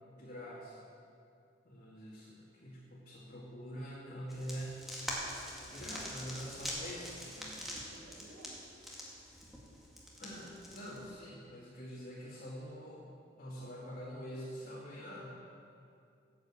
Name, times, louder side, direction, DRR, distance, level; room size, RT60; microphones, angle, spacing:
voice 1, 0.2-0.8 1.6-4.8 5.7-7.6 10.2-13.1 13.4-15.3, equal, 55° left, -8 dB, 2.2 m, -45 dB
sound 1, 4.3-11.1, equal, ahead, 2.1 m, -44 dB
voice 2, 5.5-6.2 7.7-8.5, right 1 dB, 75° right, -3 dB, 2.4 m, -56 dB
9.9 x 8.4 x 7.7 m, 2.4 s
head